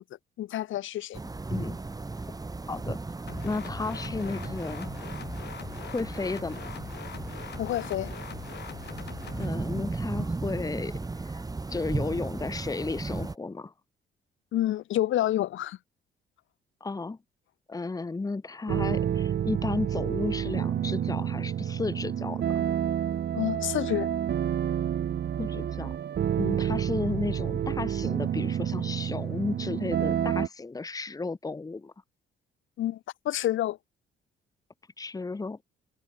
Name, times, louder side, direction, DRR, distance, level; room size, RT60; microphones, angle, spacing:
voice 1, 0.4-1.2 7.6-8.1 14.5-15.8 23.3-24.1 32.8-33.0 33.3-33.8, left 13 dB, 75° left, 1.8 m, -28 dB
sound 1, 1.1-13.3, right 3 dB, 20° right, 1.5 m, -35 dB
voice 2, 2.7-3.0 3.4-4.9 5.8-6.7 9.4-11.0 11.7-13.7 16.8-17.2 17.7-22.6 25.4-26.0 26.4-31.9 35.0-35.6, left 3 dB, 20° left, 1.2 m, -33 dB
sound 2, 3.3-9.5, left 9 dB, 60° left, 2.2 m, -43 dB
sound 3, 18.7-30.5, right 9 dB, 55° right, 1.8 m, -29 dB
cardioid pair, 90°, 20 cm